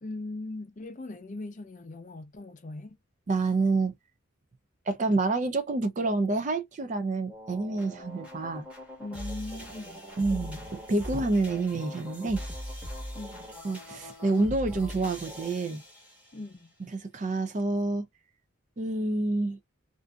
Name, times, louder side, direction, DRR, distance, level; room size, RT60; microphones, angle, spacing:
voice 1, 0.0-3.0 9.0-10.0 10.3-10.7 13.1-13.5 16.3-16.7, left 2 dB, 35° left, 0.5 m, -40 dB
voice 2, 3.3-3.9 4.9-8.7 10.2-10.6 10.9-12.4 13.6-15.8 16.9-18.0 18.8-19.6, right 3 dB, 35° right, 0.4 m, -28 dB
sound 1, 7.3-16.5, equal, 5° right, 1.0 m, -41 dB
2.5 x 2.5 x 2.2 m
head